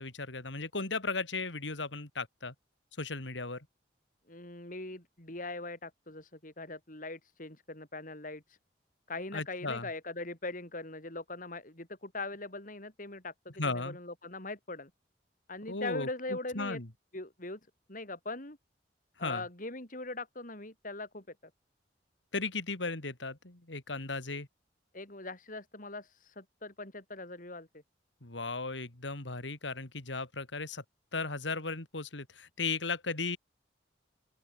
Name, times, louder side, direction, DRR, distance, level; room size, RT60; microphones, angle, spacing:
voice 1, 0.0-2.5 3.0-3.7 9.3-9.9 13.6-14.0 15.7-16.9 19.2-19.4 22.3-24.5 28.2-30.8 31.1-33.4, left 3 dB, 85° left, 3.1 m, -36 dB
voice 2, 4.3-8.6 9.1-14.9 15.5-16.8 17.1-17.6 17.9-18.6 19.2-21.2 24.9-27.8, left 2 dB, 45° left, 5.6 m, -41 dB
open air
head